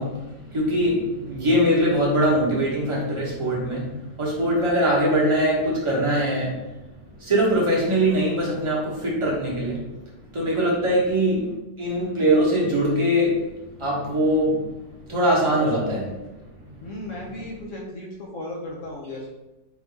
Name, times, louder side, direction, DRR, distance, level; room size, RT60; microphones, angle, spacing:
voice 1, 0.0-6.6 7.2-9.8 10.3-11.5 11.8-13.5 13.8-14.6 15.1-16.3 16.7-16.9, equal, 20° right, -6 dB, 1.0 m, -22 dB
voice 2, 16.8-19.3, left 1 dB, 60° left, -2 dB, 0.8 m, -36 dB
4.4 x 2.7 x 3.4 m, 1.0 s
omnidirectional pair, 1.9 m